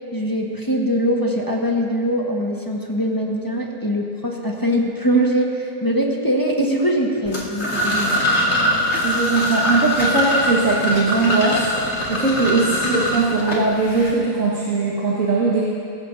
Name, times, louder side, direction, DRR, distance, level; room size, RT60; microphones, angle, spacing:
voice 1, 0.1-8.2, equal, 15° left, -1 dB, 1.4 m, -22 dB
sound 1, 7.3-14.1, equal, 40° left, 2.4 m, -22 dB
voice 2, 9.0-11.6 12.1-15.6, right 3 dB, 55° right, -5 dB, 2.1 m, -20 dB
24.5 x 15.0 x 2.8 m, 2.4 s
omnidirectional pair, 1.7 m